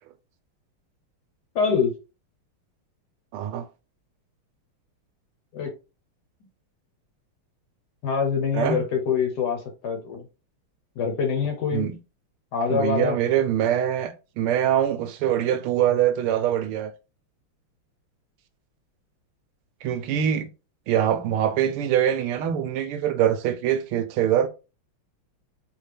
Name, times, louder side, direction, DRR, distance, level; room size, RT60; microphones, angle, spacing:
voice 1, 1.5-2.0 5.5-5.7 8.0-10.3 11.0-11.9 12.5-13.2, left 6 dB, 60° left, 1.2 m, -25 dB
voice 2, 3.3-3.7 8.5-8.8 11.7-12.0 12.7-16.9 19.8-20.5 20.9-24.5, right 10 dB, 85° right, 1.5 m, -23 dB
4.2 x 2.7 x 3.3 m
omnidirectional pair, 2.4 m